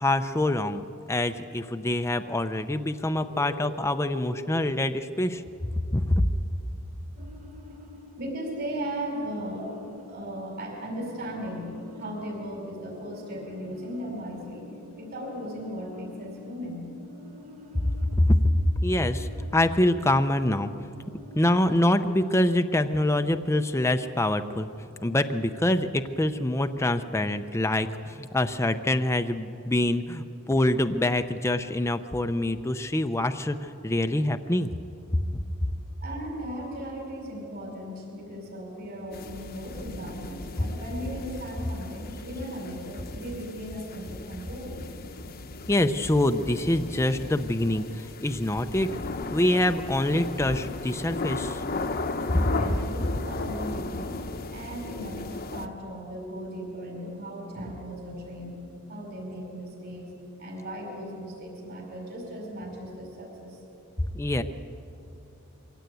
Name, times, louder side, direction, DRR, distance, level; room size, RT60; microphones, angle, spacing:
voice 1, 0.0-5.4 5.9-6.2 18.2-20.7 21.3-24.7 25.0-34.7 35.1-35.3 35.6-35.7 45.7-48.9 49.3-51.6 64.0-64.4, left 1 dB, 15° left, 7 dB, 0.6 m, -25 dB
voice 2, 4.0-4.6 8.2-9.7 10.0-14.7 15.0-16.9 36.0-44.8 52.3-54.2 54.5-58.6 58.9-60.1 60.4-63.6, equal, 50° right, 0 dB, 5.2 m, -37 dB
sound 1, 7.2-21.9, left 3 dB, 35° right, 1.1 m, -48 dB
sound 2, 39.1-55.7, left 3 dB, 45° left, 1.0 m, -36 dB
23.5 x 16.5 x 9.2 m, 2.7 s
head